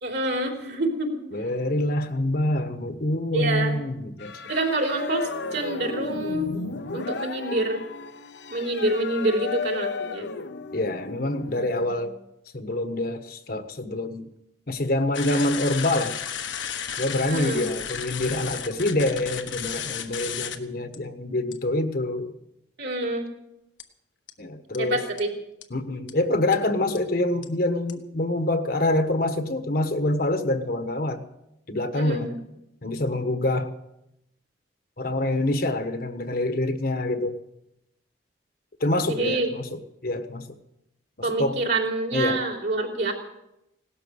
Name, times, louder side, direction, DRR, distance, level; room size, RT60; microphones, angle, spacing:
voice 1, 0.0-1.2 3.3-3.7 4.4-6.5 6.9-7.8 8.5-10.3 17.1-17.7 22.8-23.3 24.8-25.3 31.9-32.4 39.1-39.5 41.2-43.1, right 2 dB, 60° right, 1 dB, 3.6 m, -27 dB
voice 2, 1.3-4.3 10.7-12.1 12.5-14.3 14.7-16.2 17.0-22.3 24.4-25.0 25.7-31.2 31.7-32.4 32.8-33.7 35.0-37.4 38.8-40.5 41.2-41.6 42.1-42.4, left 1 dB, 50° left, 8 dB, 1.3 m, -26 dB
sound 1, 4.2-11.6, left 4 dB, 70° left, 0.9 m, -34 dB
sound 2, 15.1-20.6 20.9-21.0 21.5-21.7 23.8-23.9 24.3-24.4 24.7-24.8 25.2-25.3 25.6-25.7 26.1-26.2 26.5-26.6 27.0-27.1 27.4-27.5 27.9-28.0, left 8 dB, 85° left, 1.4 m, -33 dB
17.5 x 13.0 x 6.5 m, 0.85 s
head